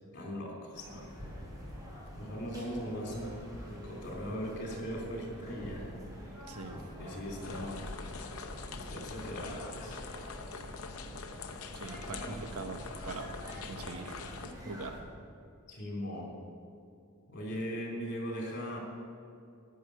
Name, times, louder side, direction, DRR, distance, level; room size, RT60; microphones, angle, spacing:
voice 1, 0.1-1.1 2.1-5.9 6.7-7.9 8.7-10.0 10.5-10.6 12.1-12.3 14.4-14.5 15.7-16.3 17.3-18.8, equal, 50° left, -1 dB, 3.2 m, -39 dB
sound 1, 0.7-15.0, equal, 15° right, 3.2 m, -46 dB
voice 2, 6.5-6.8 11.8-13.4 13.7-14.2 14.6-15.0, right 3 dB, 85° right, 6 dB, 1.1 m, -42 dB
sound 2, 7.4-14.5, left 4 dB, 75° left, 0.8 m, -44 dB
11.5 x 7.3 x 9.8 m, 2.5 s
head